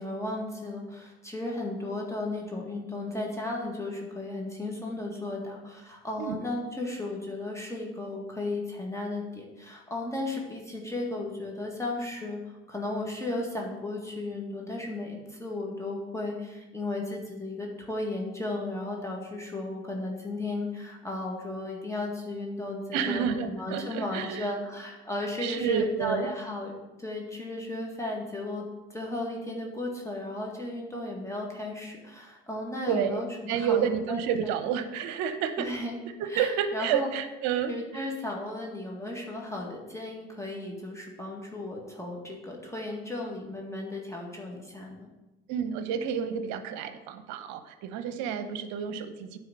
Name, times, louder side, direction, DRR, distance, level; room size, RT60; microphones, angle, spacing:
voice 1, 0.0-33.8 34.1-34.5 35.6-35.9 36.3-37.1 37.7-45.1, left 2 dB, 10° left, -1 dB, 1.8 m, -35 dB
voice 2, 22.9-24.4 25.4-26.3 32.9-35.7 36.2-38.1 45.5-49.4, right 7 dB, 65° right, 10 dB, 0.9 m, -30 dB
9.7 x 4.0 x 5.6 m, 1.1 s
hypercardioid pair, 60°, 31 cm